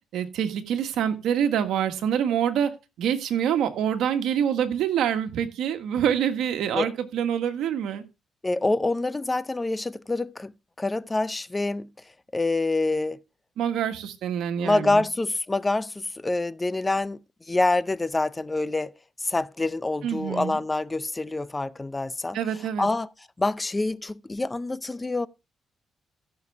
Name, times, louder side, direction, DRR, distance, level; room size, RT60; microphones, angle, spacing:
voice 1, 0.1-2.7 3.0-8.0 13.6-15.1 20.0-20.6 22.3-22.9, right 9 dB, 80° right, 1.7 m, -26 dB
voice 2, 8.4-10.5 10.8-11.9 12.3-13.2 14.6-17.2 17.5-18.9 19.2-22.4 22.8-23.1 23.4-25.3, left 2 dB, 20° left, 0.5 m, -26 dB
15.5 x 6.8 x 3.5 m
cardioid pair, 90°, 0 cm